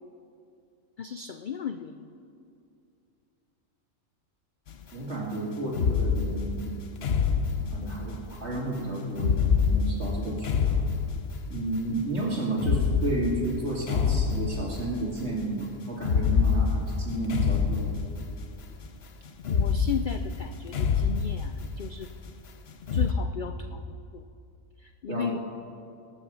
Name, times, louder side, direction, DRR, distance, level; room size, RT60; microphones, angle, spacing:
voice 1, 1.0-2.0 19.5-22.1 22.9-24.2 24.8-25.4, left 7 dB, 80° left, 8 dB, 0.4 m, -35 dB
sound 1, 4.7-4.8 5.7-8.3 9.1-11.6 12.5-15.0 16.0-18.5 19.4-21.9 22.8-23.1, left 6 dB, 55° left, 0.9 m, -26 dB
voice 2, 4.9-6.7 7.2-10.8 11.5-18.0 25.1-25.4, right 2 dB, 50° right, -3 dB, 2.8 m, -32 dB
20.0 x 7.8 x 6.3 m, 2.5 s
omnidirectional pair, 1.4 m